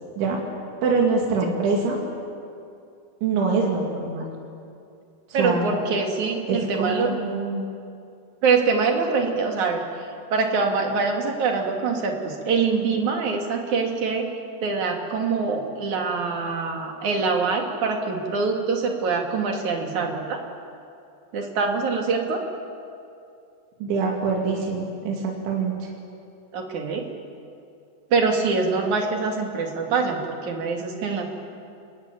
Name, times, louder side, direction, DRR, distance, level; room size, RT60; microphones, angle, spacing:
voice 1, 0.8-2.0 3.2-4.3 5.3-5.7 6.5-7.6 23.8-25.9, right 4 dB, 80° right, -1 dB, 5.0 m, -24 dB
voice 2, 5.3-7.2 8.4-9.8 10.3-14.3 14.6-20.4 21.3-22.4 26.5-27.1 28.1-31.2, right 4 dB, 45° right, 2 dB, 3.4 m, -24 dB
27.0 x 22.0 x 9.1 m, 2.5 s
omnidirectional pair, 5.2 m